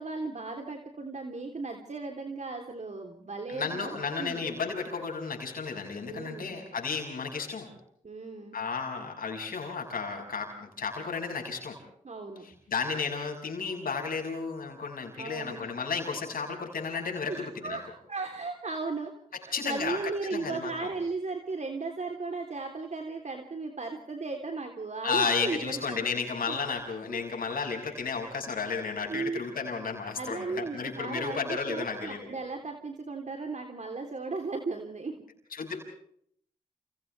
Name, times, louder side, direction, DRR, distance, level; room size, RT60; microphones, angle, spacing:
voice 1, 0.0-4.4 6.0-6.6 8.0-8.6 12.0-12.4 15.2-15.6 17.3-26.2 26.5-26.6 27.1-27.2 29.1-29.4 30.1-35.1, right 3 dB, 55° right, 3 dB, 3.3 m, -36 dB
voice 2, 3.5-7.7 8.5-11.8 12.4-17.8 19.3-20.0 20.3-20.9 25.0-32.3 35.5-35.8, left 5 dB, 90° left, 2 dB, 6.2 m, -33 dB
29.0 x 29.0 x 3.4 m, 0.66 s
cardioid pair, 55°, 14 cm